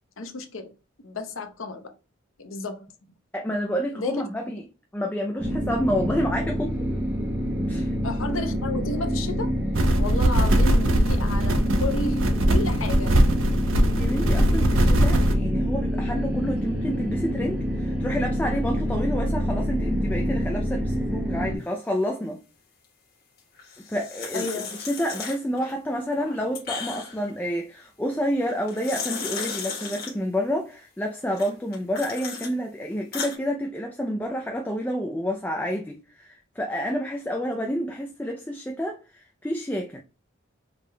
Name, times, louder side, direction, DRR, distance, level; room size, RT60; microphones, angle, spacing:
voice 1, 0.2-0.7 1.0-1.9 2.4-2.9 3.9-4.3 8.0-9.5 10.0-13.2 24.3-24.7, left 2 dB, 75° left, 0.8 m, -32 dB
voice 2, 3.3-4.6 4.9-6.8 7.7-8.0 13.9-22.4 23.9-40.0, equal, 10° left, 0.4 m, -29 dB
sound 1, 5.4-21.6, equal, 5° right, 1.0 m, -27 dB
sound 2, 9.7-15.3, right 1 dB, 75° right, 0.7 m, -21 dB
sound 3, 23.6-25.7 26.1-27.3 28.5-30.1 31.3-32.5 32.9-33.4, left 5 dB, 45° left, 1.3 m, -35 dB
4.9 x 3.5 x 2.2 m
head